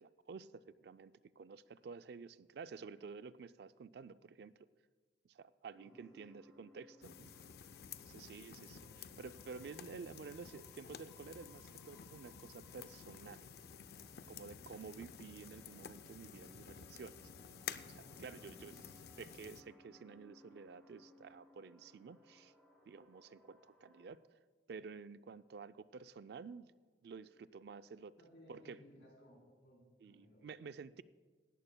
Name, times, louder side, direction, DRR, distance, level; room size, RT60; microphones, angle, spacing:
voice 1, 0.0-4.5 5.2-7.3 8.0-13.5 14.3-17.2 17.9-18.7 19.2-22.5 22.8-24.2 24.7-26.7 27.0-28.1 28.5-28.8 30.0-31.0, right 5 dB, 65° right, 14 dB, 0.3 m, -51 dB
sound 1, 5.7-24.1, left 1 dB, 5° left, 2.6 m, -65 dB
voice 2, 5.8-6.4 8.5-9.1 9.5-9.9 18.0-18.8 28.2-30.5, equal, 80° left, -1 dB, 3.7 m, -62 dB
sound 2, 7.0-19.6, left 7 dB, 60° left, 0.4 m, -52 dB
18.0 x 13.5 x 2.2 m, 1.4 s
head